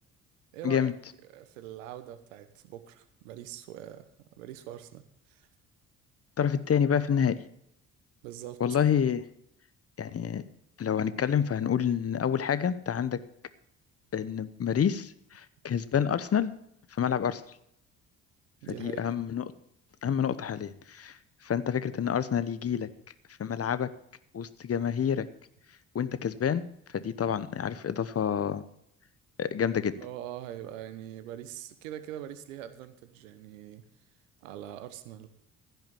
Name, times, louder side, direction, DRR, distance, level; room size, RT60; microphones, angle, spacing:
voice 1, 0.5-0.9 1.2-4.1 4.4-5.0 5.3-5.5 8.2-8.6 18.6-19.0 29.8-33.8 34.4-35.3, right 11 dB, 85° right, 12 dB, 1.1 m, -43 dB
voice 2, 6.4-7.4 8.6-9.2 10.0-10.4 10.8-13.2 14.1-16.5 17.0-17.4 18.7-19.4 20.0-21.2 21.4-22.9 23.4-23.9 24.3-25.3 25.9-26.7 26.9-28.6 29.4-29.9, left 8 dB, 40° left, 15 dB, 1.0 m, -28 dB
15.5 x 5.9 x 7.1 m, 0.74 s
hypercardioid pair, 50°, 38 cm